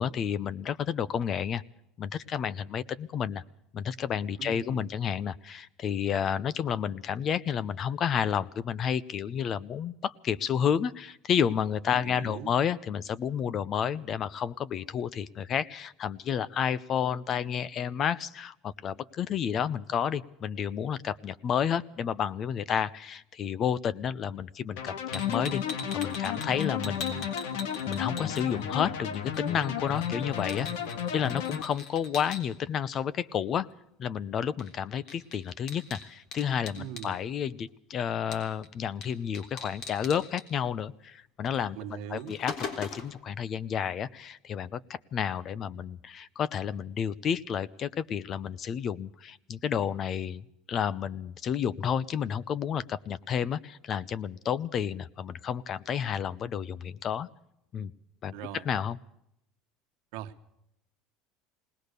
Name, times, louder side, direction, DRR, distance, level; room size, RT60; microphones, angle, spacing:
voice 1, 0.0-1.6 2.0-3.4 3.7-25.6 25.9-27.3 27.9-30.7 31.1-33.7 34.0-41.8 42.1-57.3 57.7-57.9 58.2-58.3 58.6-59.0, left 8 dB, 40° left, 20 dB, 0.7 m, -31 dB
voice 2, 4.4-4.9 11.9-12.5 36.8-37.2 41.7-42.4 58.3-58.7 60.1-60.3, right 10 dB, 75° right, 9 dB, 1.3 m, -40 dB
sound 1, 24.8-31.6, left 8 dB, 85° left, 1.8 m, -33 dB
sound 2, 25.1-28.9 29.1-32.4 34.6-34.7 35.0-37.1 38.3-38.7 39.0-39.1 39.3-40.4 41.5-41.7 42.0-43.2, left 5 dB, 55° left, 3.6 m, -41 dB
20.5 x 19.0 x 6.7 m, 0.79 s
supercardioid pair, 120°, 0 cm